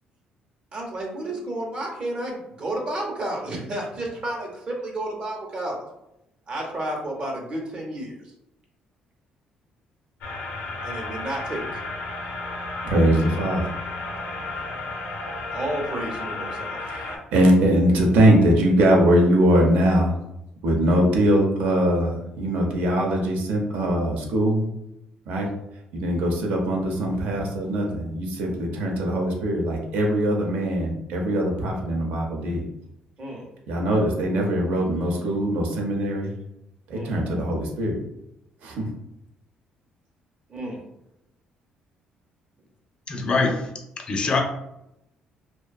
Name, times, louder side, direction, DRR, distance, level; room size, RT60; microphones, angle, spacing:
voice 1, 0.7-5.8 6.5-8.3 10.8-11.8 15.5-16.8 33.2-33.5 36.9-37.2 40.5-40.8, right 1 dB, 40° right, 0.7 m, -31 dB
sound 1, 10.2-17.2, left 3 dB, 90° left, 0.5 m, -33 dB
voice 2, 12.8-13.6 16.9-20.2 20.6-24.7 25.3-25.5 25.9-32.6 33.7-36.3 36.9-38.0 38.6-38.9, right 1 dB, 80° right, 0.6 m, -21 dB
voice 3, 43.1-43.7 44.0-44.4, left 3 dB, 35° left, 0.4 m, -23 dB
2.6 x 2.2 x 2.2 m
cardioid pair, 105°, 3 cm